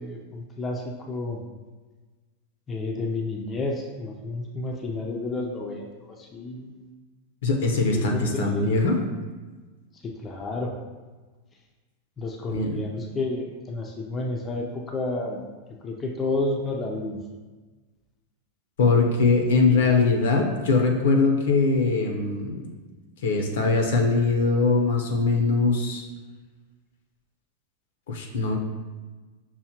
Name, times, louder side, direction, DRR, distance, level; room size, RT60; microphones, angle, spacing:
voice 1, 0.0-1.4 2.7-6.8 7.9-8.7 10.0-10.7 12.2-15.4 15.8-17.2, left 2 dB, 20° left, 0 dB, 0.4 m, -31 dB
voice 2, 7.4-9.0 12.5-12.8 18.8-22.7 23.2-26.0 28.1-28.6, left 3 dB, 80° left, 3 dB, 0.6 m, -22 dB
5.5 x 2.1 x 2.8 m, 1.3 s
supercardioid pair, 145°, 0 cm